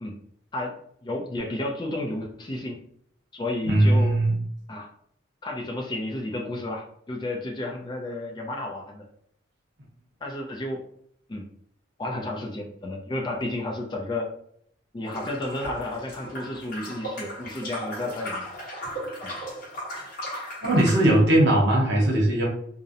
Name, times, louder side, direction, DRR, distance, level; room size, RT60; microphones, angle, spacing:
voice 1, 1.0-2.8 3.3-4.2 4.7-4.9 5.4-9.0 10.2-10.8 11.3-11.5 12.0-14.3 14.9-18.4 19.2-19.3, left 1 dB, 25° left, 1 dB, 0.3 m, -32 dB
voice 2, 3.6-4.3 20.6-22.5, right 1 dB, 70° right, -2 dB, 0.8 m, -19 dB
sound 1, 15.1-21.1, equal, 45° left, 0.9 m, -36 dB
2.4 x 2.0 x 2.6 m, 0.67 s
head